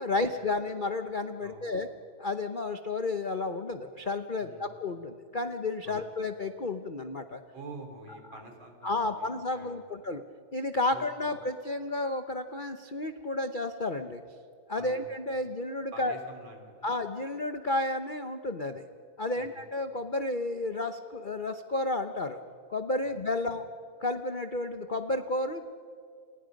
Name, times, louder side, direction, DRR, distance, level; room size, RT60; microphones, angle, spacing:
voice 1, 0.0-1.9 2.2-7.4 8.8-10.2 10.5-14.2 14.7-16.1 16.8-18.9 19.2-22.4 22.7-23.6 24.0-25.6, left 2 dB, 50° left, 7 dB, 0.6 m, -32 dB
voice 2, 1.4-1.9 4.4-4.7 5.8-6.1 7.5-10.0 10.9-11.4 14.8-15.0 15.9-16.9 19.3-19.6 23.0-23.7, right 2 dB, 70° right, 3 dB, 4.3 m, -48 dB
30.0 x 29.0 x 5.3 m, 2.2 s
omnidirectional pair, 2.2 m